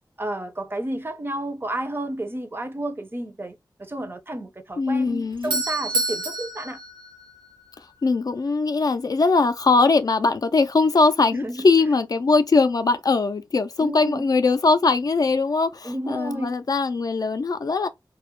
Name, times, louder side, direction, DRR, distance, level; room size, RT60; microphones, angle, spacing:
voice 1, 0.2-6.8 11.3-11.7 13.8-14.2 15.8-16.5, right 1 dB, 30° right, 0.5 m, -31 dB
voice 2, 4.8-5.6 8.0-17.9, left 3 dB, 50° left, 0.3 m, -21 dB
Doorbell, 5.1-7.9, right 3 dB, 85° right, 0.7 m, -29 dB
2.2 x 2.0 x 2.9 m
wide cardioid pair, 90°, 8 cm